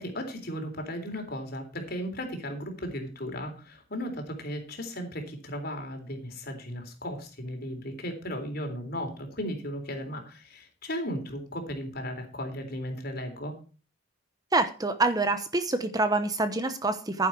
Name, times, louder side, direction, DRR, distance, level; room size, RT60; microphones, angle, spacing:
voice 1, 0.0-13.6, equal, 55° left, 5 dB, 3.5 m, -36 dB
voice 2, 14.5-17.3, right 3 dB, 20° right, 10 dB, 0.9 m, -26 dB
11.0 x 10.0 x 4.6 m, 0.35 s
head